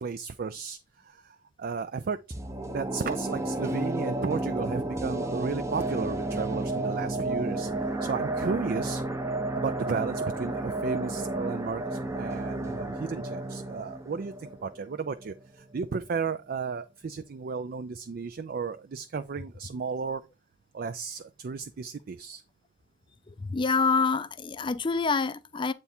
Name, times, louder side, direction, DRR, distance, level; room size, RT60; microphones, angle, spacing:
voice 1, 0.0-2.2 2.7-7.7 8.0-9.0 9.5-20.2 20.7-22.4, right 5 dB, 50° right, 0.4 m, -34 dB
sound 1, 2.3-15.4 15.7-15.8, right 2 dB, 15° right, 0.7 m, -32 dB
voice 2, 23.4-25.7, left 4 dB, 25° left, 0.4 m, -26 dB
8.1 x 3.6 x 4.3 m
head